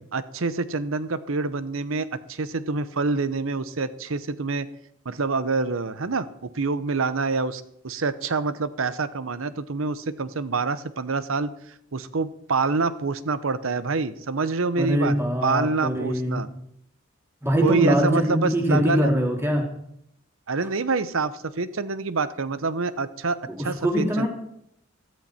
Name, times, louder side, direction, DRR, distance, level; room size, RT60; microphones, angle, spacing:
voice 1, 0.1-4.7 5.0-6.3 6.5-11.5 11.9-15.2 15.4-16.5 17.6-19.1 20.5-23.4 23.6-24.3, right 4 dB, 85° right, 15 dB, 0.8 m, -26 dB
voice 2, 14.8-16.4 17.4-19.7 23.5-24.3, equal, 10° right, 1 dB, 2.7 m, -23 dB
14.0 x 13.5 x 4.4 m, 0.74 s
head